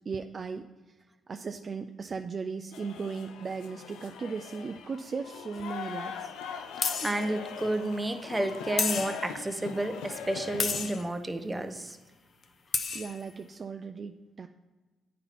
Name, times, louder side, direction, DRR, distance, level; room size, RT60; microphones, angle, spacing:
voice 1, 0.1-0.7 1.3-6.3 12.9-14.5, right 5 dB, 40° right, 6 dB, 0.4 m, -37 dB
sound 1, 2.7-11.0, left 7 dB, 90° left, 0.5 m, -41 dB
sound 2, 5.6-5.7 6.8-7.3 8.8-9.4 10.6-11.0 12.4-12.5 12.7-13.2, left 5 dB, 50° left, 0.6 m, -31 dB
voice 2, 7.0-12.0, right 1 dB, 15° right, 7 dB, 0.7 m, -31 dB
8.8 x 4.2 x 4.2 m, 1.2 s
cardioid pair, 90°, 0 cm